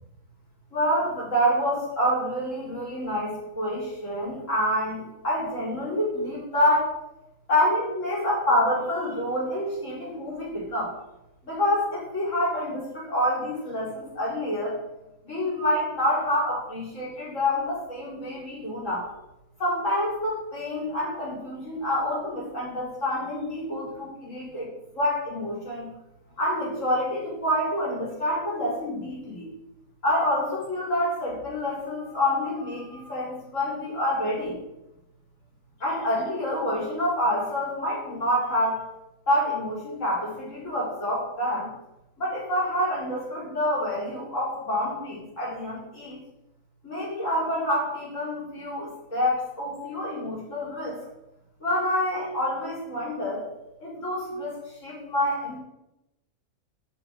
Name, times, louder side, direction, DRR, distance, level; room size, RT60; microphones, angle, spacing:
voice 1, 0.7-7.0 7.5-10.9 11.4-14.8 15.2-19.1 19.6-25.9 26.4-29.5 30.0-34.6 35.8-38.8 39.3-41.7 42.2-46.2 46.8-51.1 51.6-53.5 53.8-55.6, left 1 dB, 50° left, -4 dB, 4.6 m, -27 dB
12.5 x 6.4 x 5.2 m, 0.91 s
omnidirectional pair, 1.8 m